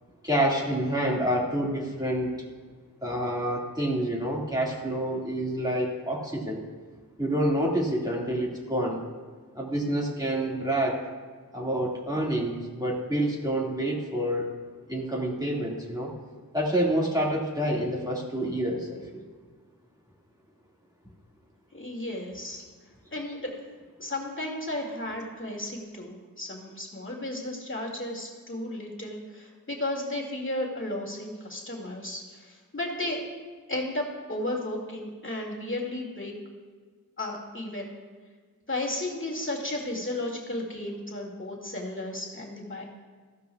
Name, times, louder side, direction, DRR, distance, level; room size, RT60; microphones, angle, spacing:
voice 1, 0.2-2.4 3.0-6.6 7.2-9.0 9.5-11.0 11.5-14.5 14.9-16.1 16.5-19.2, right 1 dB, 10° right, -3 dB, 1.9 m, -28 dB
voice 2, 21.7-22.6 23.1-23.5 24.0-33.3 33.7-36.3 37.2-37.9 38.7-42.8, left 1 dB, 35° left, -1 dB, 2.1 m, -34 dB
15.0 x 12.0 x 2.3 m, 1.5 s
wide cardioid pair, 50°, 36 cm